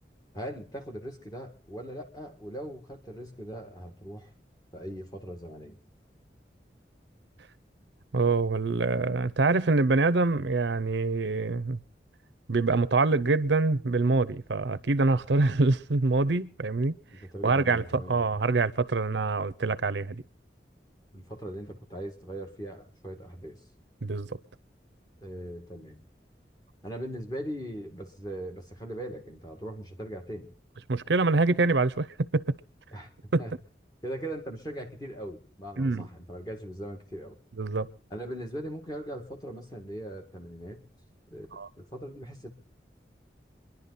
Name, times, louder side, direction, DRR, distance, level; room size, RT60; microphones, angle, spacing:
voice 1, 0.3-4.3 4.7-5.8 17.1-18.2 21.1-23.6 25.2-26.0 26.8-30.5 32.9-33.1 33.4-33.5 34.0-37.4 38.1-40.8 41.3-41.5 41.8-42.5, right 1 dB, 20° left, 2.1 m, -40 dB
voice 2, 8.1-11.8 12.5-17.0 17.4-20.2 24.0-24.3 30.9-32.6 33.3-33.4 35.8-36.1 37.6-37.9 41.5-41.7, right 3 dB, 85° right, 0.7 m, -25 dB
26.0 x 11.0 x 4.1 m
head